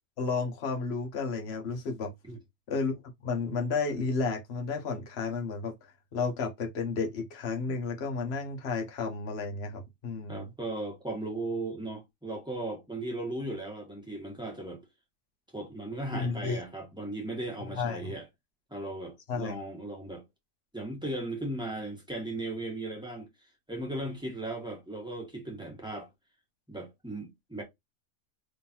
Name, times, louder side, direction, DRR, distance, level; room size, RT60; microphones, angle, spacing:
voice 1, 0.2-2.1 2.7-2.9 3.2-5.7 6.1-10.4 16.1-16.6 17.7-18.1 19.3-19.5, left 4 dB, 50° left, 1.2 m, -32 dB
voice 2, 10.3-14.8 15.5-18.3 18.7-20.2 20.7-23.3 23.7-26.1 26.7-27.6, right 2 dB, 5° right, 1.6 m, -37 dB
3.7 x 3.3 x 2.8 m
omnidirectional pair, 1.6 m